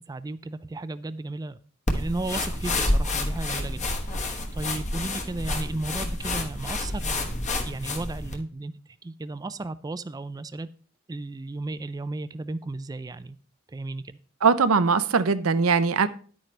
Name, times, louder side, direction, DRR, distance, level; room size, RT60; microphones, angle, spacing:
voice 1, 0.0-1.6 1.9-7.3 7.6-10.7 11.1-13.4 13.7-14.2, right 2 dB, 20° right, 0.3 m, -34 dB
sound 1, 1.9-8.4, left 2 dB, 35° left, 1.3 m, -29 dB
voice 2, 14.4-16.1, right 5 dB, 90° right, 0.7 m, -21 dB
10.5 x 9.0 x 3.3 m
head